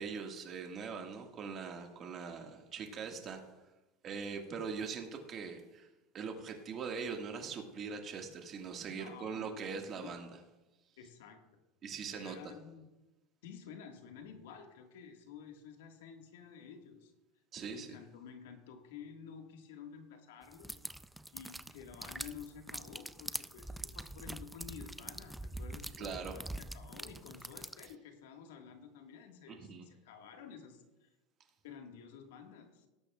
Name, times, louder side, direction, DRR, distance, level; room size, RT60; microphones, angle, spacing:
voice 1, 0.0-3.4 4.0-5.9 6.1-10.3 11.8-12.4 17.5-18.0 26.0-26.3 29.5-29.9, right 5 dB, 35° right, 3 dB, 1.8 m, -42 dB
voice 2, 8.9-10.1 11.0-11.4 12.1-12.8 13.4-17.1 17.7-20.8 21.3-31.1 31.6-32.9, left 7 dB, 80° left, 4 dB, 1.8 m, -51 dB
sound 1, 20.5-27.9, right 1 dB, 5° right, 0.4 m, -44 dB
18.5 x 8.7 x 2.4 m, 1.0 s
supercardioid pair, 115°, 0 cm